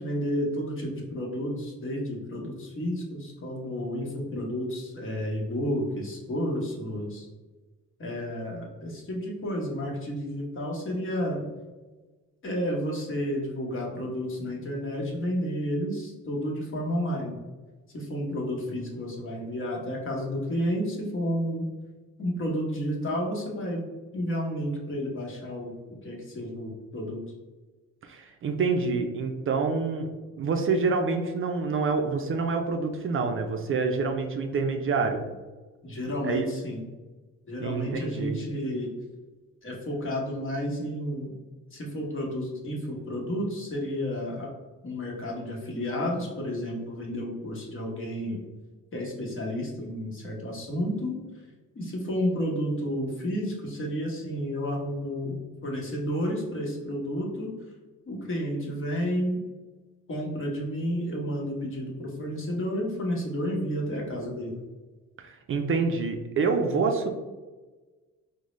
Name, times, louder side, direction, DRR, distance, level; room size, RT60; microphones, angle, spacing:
voice 1, 0.0-7.3 8.0-11.4 12.4-17.4 17.9-21.6 22.2-23.9 24.1-27.2 35.8-36.9 37.5-38.9 39.6-41.3 41.7-44.5 44.8-48.4 48.9-51.2 51.7-55.3 55.6-57.5 58.1-59.4 60.1-64.6, equal, 45° left, -1 dB, 1.1 m, -31 dB
voice 2, 28.0-30.1 30.4-35.2 36.2-36.5 37.6-38.4 65.2-67.1, right 4 dB, 45° right, 4 dB, 0.4 m, -27 dB
3.7 x 2.1 x 3.1 m, 1.3 s
cardioid pair, 90°, 30 cm